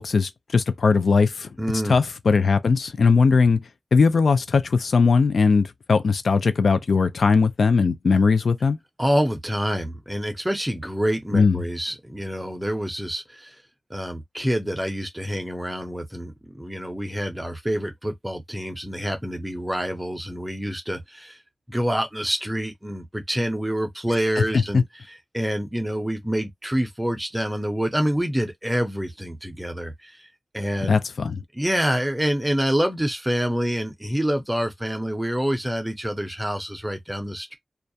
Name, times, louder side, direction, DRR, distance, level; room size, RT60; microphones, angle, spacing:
voice 1, 0.0-1.5 1.9-3.6 3.9-8.8 11.3-11.6 24.4-24.8 30.9-31.4, left 4 dB, 75° left, 0.3 m, -19 dB
voice 2, 1.6-2.0 3.3-3.5 9.0-13.5 13.9-21.4 21.7-30.2 30.5-31.0 31.5-37.6, equal, 10° right, 0.6 m, -27 dB
2.3 x 2.1 x 2.6 m
wide cardioid pair, 125°, 0 cm